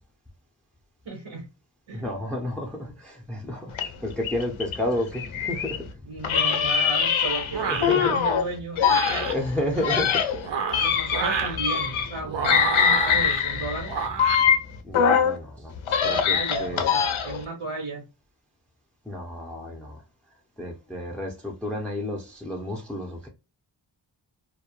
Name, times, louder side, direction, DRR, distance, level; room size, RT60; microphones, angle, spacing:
voice 1, 1.0-1.5 1.9-2.1 6.1-9.3 10.8-13.9 16.0-18.0, right 3 dB, 85° right, 1.1 m, -34 dB
voice 2, 1.9-6.0 6.5-6.6 7.6-8.2 9.3-10.2 10.7-10.9 13.0-13.1 14.8-16.9 19.1-20.0 20.6-23.3, left 1 dB, 5° left, 0.5 m, -31 dB
sound 1, 3.7-5.8 6.2-8.4 8.8-12.2 12.4-15.4 15.7-17.4, left 7 dB, 85° left, 0.6 m, -23 dB
sound 2, 7.5-8.0 8.8-9.3 10.3-11.6 12.3-13.4 13.9-14.4, right 6 dB, 65° right, 0.6 m, -28 dB
2.3 x 2.1 x 2.9 m
cardioid pair, 65°, 47 cm